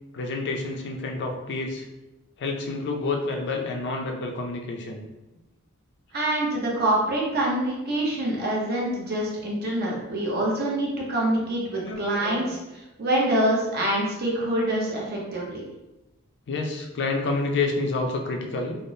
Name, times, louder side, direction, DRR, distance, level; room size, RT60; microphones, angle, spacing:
voice 1, 0.1-1.9 2.4-5.0 11.7-12.5 16.5-18.8, left 3 dB, 55° left, 2 dB, 0.4 m, -29 dB
voice 2, 6.1-12.6 13.0-15.6, right 1 dB, 50° right, -3 dB, 0.8 m, -25 dB
3.4 x 2.0 x 2.6 m, 1.0 s
head